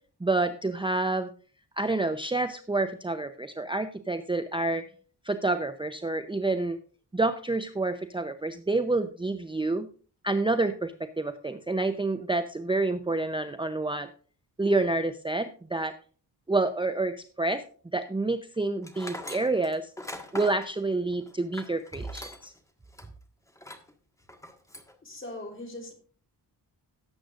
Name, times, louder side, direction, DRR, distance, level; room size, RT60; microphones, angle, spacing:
voice 1, 0.2-1.3 1.8-4.8 5.2-6.8 7.1-9.9 10.2-14.1 14.6-15.9 16.5-17.6 17.9-19.9 20.3-22.5, right 2 dB, 10° right, 0.6 m, -28 dB
Tools, 18.8-22.6 22.9-23.1 23.5-23.9 24.3-24.9, left 1 dB, 5° left, 1.6 m, -42 dB
voice 2, 25.0-25.9, left 1 dB, 30° left, 3.5 m, -40 dB
18.0 x 7.7 x 2.5 m
wide cardioid pair, 115°, 41 cm